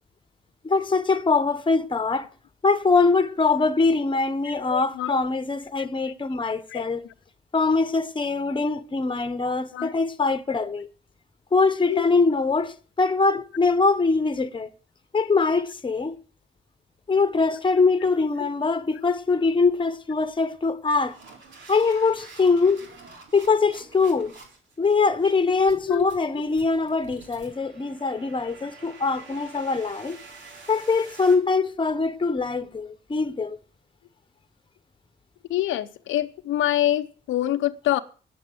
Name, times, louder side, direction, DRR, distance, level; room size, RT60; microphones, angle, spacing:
voice 1, 0.6-2.3 2.6-7.1 7.5-10.9 11.5-14.7 15.1-16.2 17.1-21.2 21.7-22.8 23.3-24.3 24.8-30.2 30.7-33.6, left 4 dB, 25° left, 1.2 m, -23 dB
voice 2, 4.5-5.1 5.8-5.9 6.3-6.4 6.7-7.1 9.4-9.9 11.9-12.0 18.4-18.5 25.9-26.1 35.5-38.0, left 13 dB, 85° left, 0.8 m, -26 dB
sound 1, 17.6-17.8 18.1-18.4 18.9-19.2 19.7-20.0 20.6-31.3, right 3 dB, 70° right, 4.0 m, -48 dB
9.4 x 7.6 x 9.3 m
cardioid pair, 90°, 20 cm